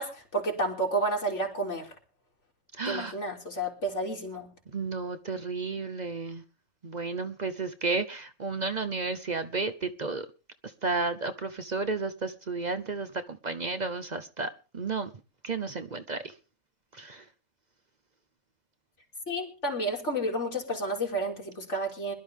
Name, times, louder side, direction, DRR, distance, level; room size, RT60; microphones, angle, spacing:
voice 1, 0.0-1.9 2.8-4.5 19.3-22.1, right 1 dB, 75° left, 3.4 m, -31 dB
voice 2, 2.8-3.2 4.7-6.4 6.8-10.3 10.8-15.1 15.4-16.3 16.9-17.2, right 4 dB, 40° right, 0.9 m, -32 dB
21.0 x 12.0 x 3.6 m
omnidirectional pair, 1.2 m